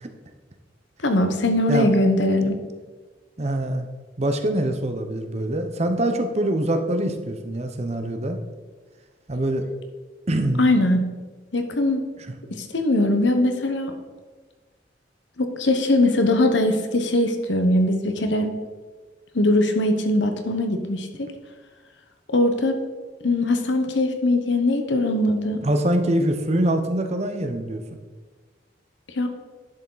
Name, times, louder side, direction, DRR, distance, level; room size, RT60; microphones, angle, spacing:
voice 1, 1.0-2.6 10.6-11.1 11.5-12.0 12.6-13.9 15.4-18.5 19.3-21.3 22.3-22.8 23.2-25.6 29.2-29.3, left 1 dB, 70° left, 6 dB, 1.1 m, -21 dB
voice 2, 3.4-3.9 4.2-8.4 9.3-9.7 10.3-10.7 25.6-27.8, right 1 dB, 35° right, 6 dB, 0.8 m, -24 dB
10.5 x 7.0 x 4.0 m, 1.4 s
head